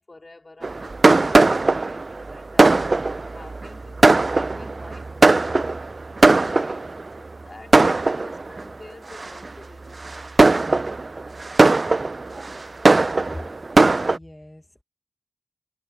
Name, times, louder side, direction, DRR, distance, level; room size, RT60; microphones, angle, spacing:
voice 1, 0.0-5.8 6.2-10.3, left 2 dB, 40° left, 3.4 m, -46 dB
Fireworks, 0.6-7.1 7.7-8.6 9.2-9.5 10.0-14.2, right 3 dB, 55° right, 0.3 m, -18 dB
voice 2, 14.0-14.8, left 1 dB, 15° left, 1.2 m, -40 dB
cardioid pair, 45°, 0 cm